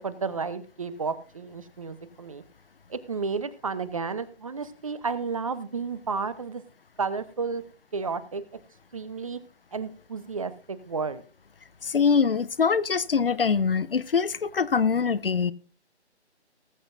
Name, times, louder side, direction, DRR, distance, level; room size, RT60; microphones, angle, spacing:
voice 1, 0.0-2.4 2.9-6.6 7.0-7.6 7.9-8.4 8.9-9.4 9.7-11.2, right 5 dB, 30° right, 0.8 m, -32 dB
voice 2, 11.8-15.5, left 6 dB, 55° left, 0.7 m, -23 dB
20.0 x 7.8 x 2.6 m
figure-of-eight pair, 155°, 34 cm